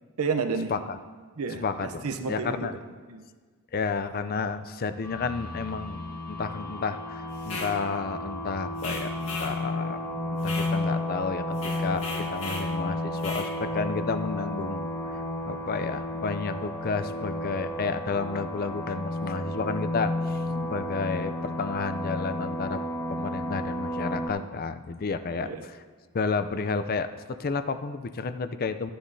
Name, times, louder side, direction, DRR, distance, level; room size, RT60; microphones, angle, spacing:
voice 1, 0.2-0.7 1.4-3.3 20.5-20.7 25.3-25.7, right 4 dB, 80° right, 6 dB, 0.7 m, -32 dB
voice 2, 1.6-2.7 3.7-10.1 10.3-12.0 12.3-14.9 15.5-20.4 20.7-22.8 23.1-25.5 26.1-28.9, left 4 dB, 40° left, 10 dB, 0.4 m, -31 dB
sound 1, 5.0-24.3, left 1 dB, 15° left, 0.8 m, -32 dB
sound 2, 7.4-7.8 8.8-9.6 10.4-10.7 11.5-12.7 13.2-13.5, left 3 dB, 65° left, 1.7 m, -36 dB
14.5 x 10.0 x 2.7 m, 1.5 s
head